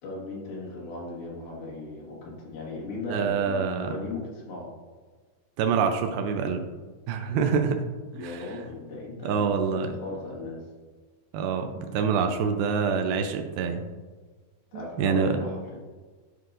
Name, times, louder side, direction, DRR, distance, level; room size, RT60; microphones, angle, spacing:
voice 1, 0.0-4.7 8.1-10.6 14.7-15.8, left 2 dB, 65° left, -5 dB, 3.2 m, -37 dB
voice 2, 3.1-3.9 5.6-6.7 7.1-7.8 8.2-8.5 9.3-9.9 11.3-13.8 14.7-15.4, right 6 dB, 90° right, 5 dB, 2.1 m, -26 dB
12.0 x 4.7 x 2.5 m, 1.4 s
omnidirectional pair, 4.8 m